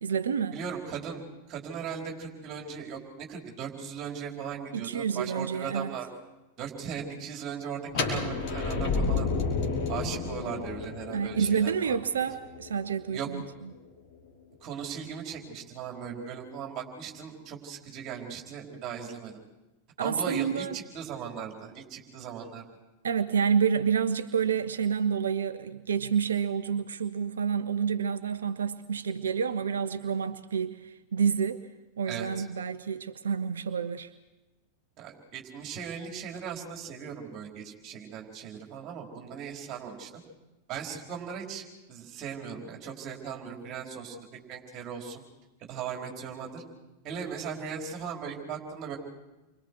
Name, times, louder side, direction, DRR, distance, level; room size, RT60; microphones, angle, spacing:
voice 1, 0.0-0.6 4.7-5.9 11.1-13.4 20.0-20.8 23.0-31.7 32.0-34.1, right 7 dB, 65° right, 12 dB, 0.7 m, -28 dB
voice 2, 0.5-6.1 6.6-9.3 9.9-12.0 13.1-13.3 14.6-19.4 20.0-22.6 32.1-32.5 35.0-40.2 40.7-45.2 45.6-46.6 47.0-49.0, right 7 dB, 35° right, 0 dB, 4.7 m, -38 dB
sound 1, 7.9-13.7, left 4 dB, 45° left, 5.8 m, -31 dB
30.0 x 24.5 x 4.8 m, 1.0 s
figure-of-eight pair, 90°, 0 cm